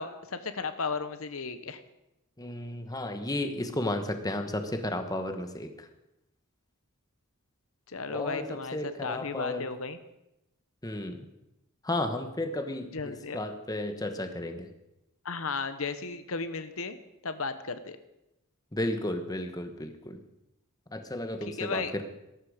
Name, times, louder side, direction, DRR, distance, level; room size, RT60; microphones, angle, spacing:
voice 1, 0.0-1.8 7.9-10.0 12.9-13.4 15.2-17.0 17.2-18.0 21.4-21.9, left 4 dB, 70° left, 10 dB, 1.0 m, -34 dB
voice 2, 2.4-5.7 8.1-9.7 10.8-11.2 11.8-14.7 18.7-19.9 20.9-22.0, left 1 dB, 15° left, 7 dB, 1.2 m, -33 dB
18.5 x 13.5 x 5.1 m, 0.89 s
head